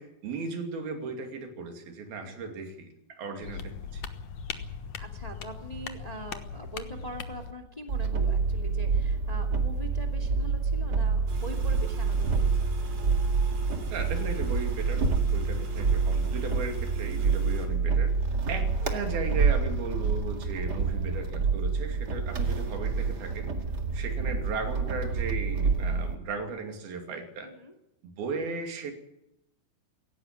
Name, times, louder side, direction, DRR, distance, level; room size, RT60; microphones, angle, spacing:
voice 1, 0.0-4.0 13.9-18.2 18.5-23.5 23.9-27.5 28.0-28.9, right 4 dB, 90° right, 5 dB, 4.5 m, -36 dB
voice 2, 2.2-2.6 4.5-4.6 5.0-12.8 20.5-21.0 23.6-24.0 27.4-27.7, right 1 dB, 15° left, 6 dB, 1.8 m, -43 dB
sound 1, 3.4-7.5, left 6 dB, 60° left, 2.0 m, -39 dB
sound 2, 7.9-26.1, right 4 dB, 35° right, 1.9 m, -27 dB
sound 3, 11.3-17.7, right 8 dB, 70° right, 4.8 m, -44 dB
18.0 x 17.0 x 8.9 m, 0.86 s
omnidirectional pair, 4.2 m